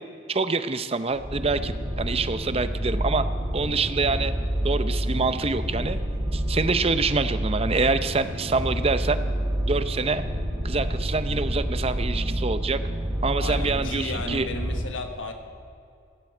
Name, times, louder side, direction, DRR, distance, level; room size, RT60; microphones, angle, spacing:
voice 1, 0.3-3.3 3.5-4.3 4.6-6.0 6.3-9.2 9.7-10.2 10.6-12.8 13.2-14.5, right 3 dB, 30° right, 11 dB, 0.6 m, -26 dB
sound 1, 1.1-14.8, right 1 dB, 15° right, 4.8 m, -28 dB
voice 2, 13.4-15.3, left 2 dB, 70° left, 5 dB, 1.4 m, -34 dB
17.0 x 16.0 x 4.5 m, 2.4 s
head